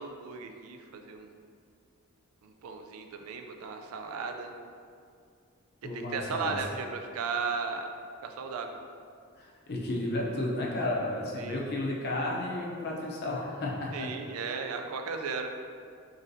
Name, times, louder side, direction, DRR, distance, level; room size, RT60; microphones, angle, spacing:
voice 1, 0.0-1.3 2.4-4.5 5.9-7.9 8.2-8.8 11.4-11.6 13.9-15.5, right 5 dB, 80° right, 5 dB, 0.4 m, -36 dB
voice 2, 5.8-6.6 9.4-14.1, left 1 dB, 50° left, -2 dB, 0.6 m, -33 dB
4.0 x 3.7 x 2.6 m, 2.3 s
head